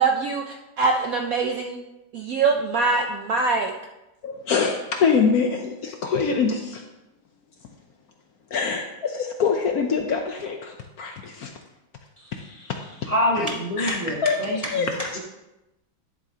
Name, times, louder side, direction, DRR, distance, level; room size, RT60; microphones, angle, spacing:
voice 1, 0.0-1.8 2.1-3.7, right 4 dB, 70° right, 2 dB, 0.8 m, -23 dB
voice 2, 4.2-6.8 8.5-11.5 12.3-13.1 13.4-13.5 13.8-14.4 14.7-15.1, left 5 dB, 65° left, 3 dB, 1.0 m, -25 dB
voice 3, 12.2-12.7 13.0-15.2, equal, 30° left, -2 dB, 0.6 m, -27 dB
11.5 x 7.2 x 2.8 m, 0.96 s
omnidirectional pair, 2.1 m